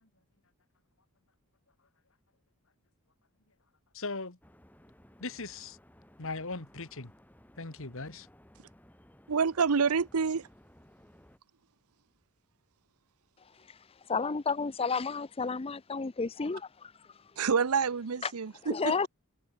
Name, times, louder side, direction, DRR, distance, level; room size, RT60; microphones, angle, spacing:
voice 1, 3.9-4.4 5.2-5.8 6.2-7.1 7.6-8.3, left 3 dB, 65° left, 2.2 m, -39 dB
sound 1, 4.4-11.4, equal, 10° left, 3.4 m, -59 dB
voice 2, 9.3-10.5 17.4-19.1, right 5 dB, 85° right, 0.7 m, -28 dB
voice 3, 14.1-16.9 18.2-18.3 18.7-19.1, left 4 dB, 25° left, 0.5 m, -31 dB
head